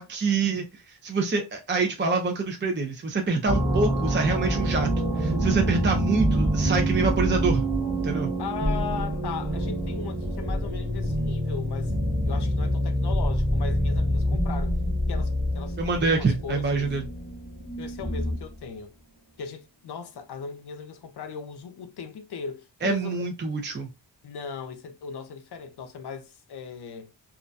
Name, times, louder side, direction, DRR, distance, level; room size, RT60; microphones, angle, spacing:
voice 1, 0.0-7.6 8.0-8.3 15.8-17.0 22.8-23.9, right 4 dB, 25° right, 0.4 m, -26 dB
sound 1, 3.5-18.5, right 1 dB, 5° right, 1.0 m, -26 dB
voice 2, 8.4-11.9 12.3-14.8 15.1-16.9 17.8-18.9 19.4-23.3 24.2-27.1, left 6 dB, 60° left, 0.5 m, -38 dB
2.4 x 2.1 x 2.5 m
wide cardioid pair, 65°, 45 cm